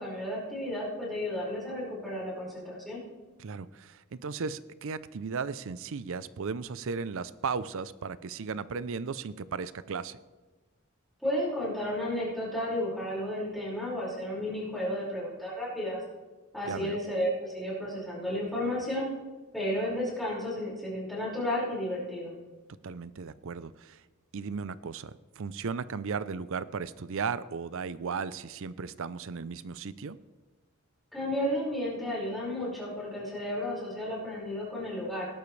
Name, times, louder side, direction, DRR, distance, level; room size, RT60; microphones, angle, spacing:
voice 1, 0.0-3.0 11.2-16.0 16.5-19.1 19.5-22.3 31.1-35.3, left 1 dB, ahead, -7 dB, 5.2 m, -32 dB
voice 2, 3.4-10.2 16.7-17.0 22.8-24.0 24.3-30.2, right 5 dB, 65° right, 16 dB, 0.5 m, -36 dB
19.0 x 12.0 x 3.3 m, 1.2 s
head